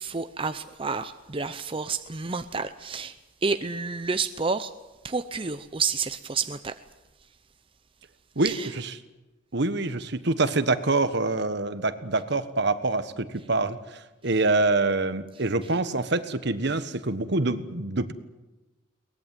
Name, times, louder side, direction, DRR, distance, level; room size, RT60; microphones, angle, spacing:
voice 1, 0.0-3.2 3.4-4.7 5.0-6.8 8.4-8.7, right 4 dB, 30° right, 10 dB, 0.7 m, -29 dB
voice 2, 9.5-18.1, right 3 dB, 60° right, 12 dB, 1.4 m, -25 dB
23.0 x 19.5 x 9.1 m, 1.1 s
head